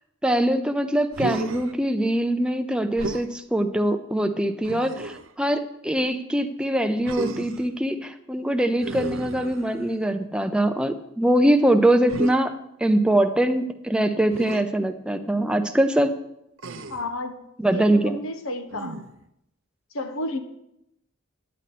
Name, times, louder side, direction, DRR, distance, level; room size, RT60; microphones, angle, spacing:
voice 1, 0.2-12.5 12.8-16.1 17.6-18.2, right 1 dB, 5° right, 6 dB, 0.6 m, -23 dB
Human voice, 1.1-1.7 3.0-3.3 4.6-5.3 7.0-7.7 8.8-10.0 12.1-12.4 14.3-14.6 16.6-17.1 18.7-19.2, right 2 dB, 70° right, 0.7 m, -33 dB
voice 2, 16.9-17.4 17.7-18.9 19.9-20.4, left 1 dB, 85° left, 7 dB, 1.1 m, -31 dB
9.7 x 9.6 x 4.3 m, 0.82 s
head